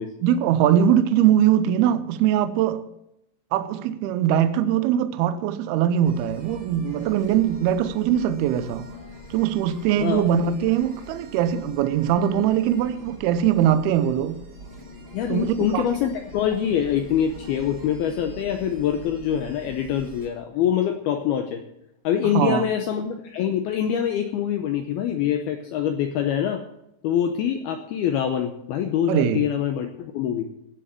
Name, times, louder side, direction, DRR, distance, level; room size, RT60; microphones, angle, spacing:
voice 1, 0.2-2.8 3.5-8.9 9.3-14.4 15.3-15.9 22.3-22.7 29.1-29.5, right 10 dB, 85° right, 2.2 m, -21 dB
sound 1, 6.0-20.3, left 1 dB, 30° right, 2.8 m, -43 dB
voice 2, 15.1-21.6 22.0-26.6 27.0-30.5, left 9 dB, 80° left, 2.2 m, -24 dB
17.5 x 6.6 x 7.4 m
omnidirectional pair, 5.5 m